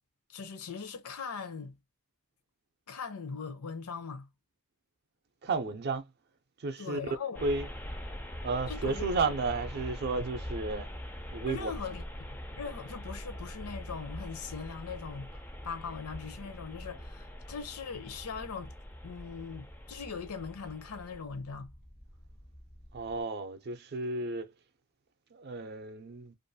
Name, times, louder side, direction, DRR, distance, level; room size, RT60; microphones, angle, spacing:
voice 1, 0.3-1.8 2.9-4.3 6.8-7.4 8.7-9.3 11.5-12.0 12.5-18.7 19.0-21.7, left 5 dB, 75° left, 0.6 m, -40 dB
voice 2, 5.4-6.1 6.6-7.0 7.4-7.7 8.4-10.9 11.3-11.7 22.9-24.5 25.3-26.3, right 3 dB, 45° right, 0.5 m, -33 dB
sound 1, 7.3-23.2, equal, 10° left, 0.3 m, -43 dB
2.5 x 2.3 x 2.6 m
head